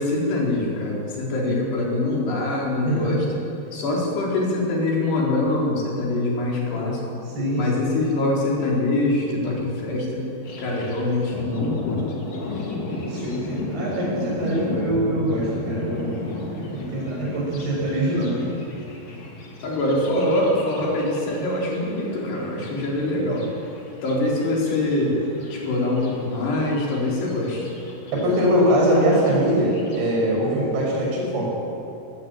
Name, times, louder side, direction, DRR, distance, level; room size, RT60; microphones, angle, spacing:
voice 1, 0.0-3.2 3.7-7.0 7.5-10.2 10.6-12.0 19.6-23.5 24.0-25.2 25.5-27.7, left 2 dB, 80° left, -3 dB, 6.4 m, -24 dB
voice 2, 2.8-3.2 7.2-7.7 13.0-16.2 16.7-18.4 28.2-31.5, equal, 75° right, -3 dB, 8.6 m, -22 dB
Thunder, 10.4-30.0, left 2 dB, 40° left, 3.8 m, -35 dB
20.0 x 18.5 x 9.0 m, 2.8 s
omnidirectional pair, 4.7 m